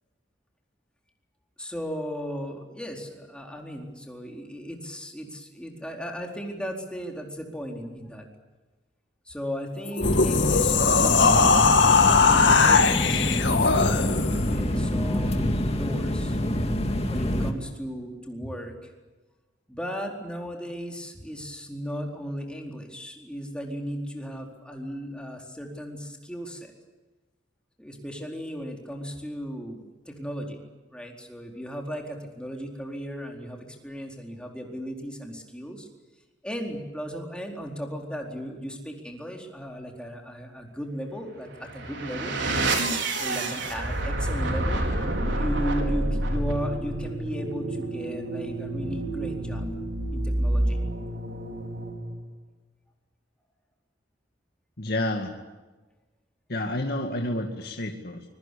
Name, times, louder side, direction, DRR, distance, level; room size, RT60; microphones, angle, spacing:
voice 1, 1.6-8.3 9.3-11.7 12.2-16.4 17.1-18.9 19.7-26.7 27.8-29.8 30.1-30.6 30.9-35.9 36.4-42.4 43.1-44.9 45.3-49.7 50.1-50.8, equal, 5° left, 1 dB, 4.3 m, -36 dB
sound 1, 9.9-14.5, left 5 dB, 75° left, 2.3 m, -20 dB
sound 2, 10.0-17.5, left 1 dB, 35° left, 2.3 m, -26 dB
sound 3, 41.5-52.2, right 1 dB, 75° right, 5.0 m, -28 dB
voice 2, 54.8-55.3 56.5-58.2, left 1 dB, 55° left, 2 dB, 2.3 m, -29 dB
24.5 x 23.5 x 8.5 m, 1.2 s
head